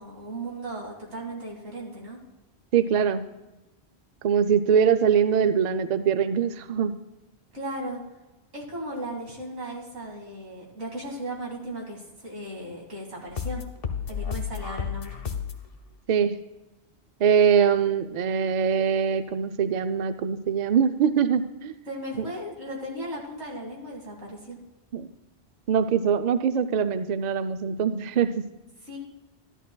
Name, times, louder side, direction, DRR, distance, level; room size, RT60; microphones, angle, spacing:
voice 1, 0.0-2.2 7.5-8.0 8.5-13.6 14.1-15.2 21.9-24.6 28.8-29.0, right 1 dB, 90° right, -1 dB, 2.4 m, -36 dB
voice 2, 2.7-3.2 4.2-7.0 16.1-16.4 17.2-21.8 24.9-25.1 25.7-28.4, right 7 dB, 55° right, 10 dB, 0.5 m, -23 dB
sound 1, 13.3-15.7, left 7 dB, 60° left, 1.0 m, -32 dB
13.0 x 11.0 x 2.2 m, 1.0 s
omnidirectional pair, 1.1 m